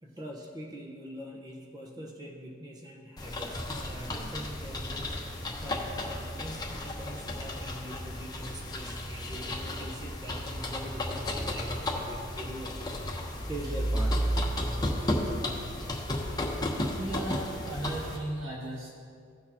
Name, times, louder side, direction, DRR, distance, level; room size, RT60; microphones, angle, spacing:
voice 1, 0.0-5.2 5.6-12.7 13.5-14.2 16.5-16.8, equal, 20° right, -1 dB, 1.0 m, -43 dB
sound 1, 3.2-18.2, left 1 dB, 20° left, 1.0 m, -33 dB
voice 2, 17.0-18.9, right 1 dB, 80° right, -6 dB, 2.2 m, -36 dB
16.5 x 6.5 x 2.9 m, 2.3 s
head